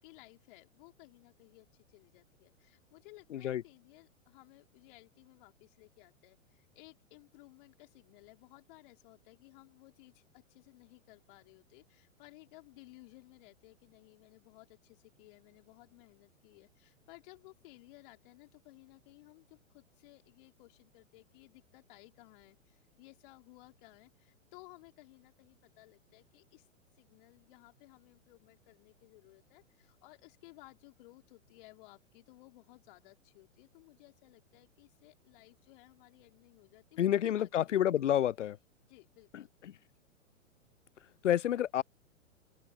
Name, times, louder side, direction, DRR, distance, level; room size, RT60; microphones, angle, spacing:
voice 1, 0.0-26.7 26.9-37.9 38.9-39.5, left 22 dB, 40° left, 4.5 m, -58 dB
voice 2, 37.0-38.6 39.3-39.4 41.2-41.8, left 11 dB, 65° left, 0.6 m, -29 dB
open air
figure-of-eight pair, 110°, 39 cm